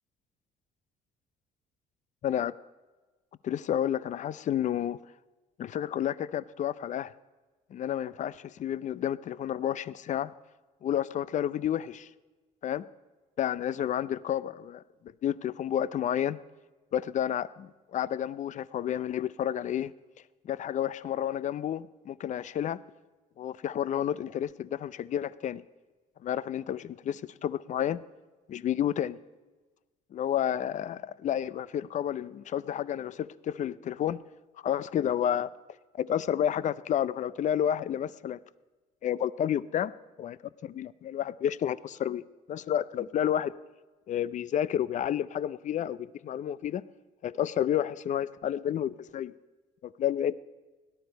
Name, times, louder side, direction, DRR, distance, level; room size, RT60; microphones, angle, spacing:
voice 1, 3.4-5.0 5.6-7.1 7.7-10.3 10.8-12.1 12.6-12.9 13.4-14.8 15.2-16.4 16.9-19.9 20.4-22.8 23.4-25.6 26.2-28.0 28.5-29.2 30.1-34.2 34.6-35.5 35.9-38.4 39.0-39.9 40.2-43.5 44.1-46.8 47.2-49.3 49.8-50.4, left 10 dB, 45° left, 18 dB, 0.5 m, -30 dB
17.5 x 11.5 x 5.2 m, 1.3 s
cardioid pair, 110°, 17 cm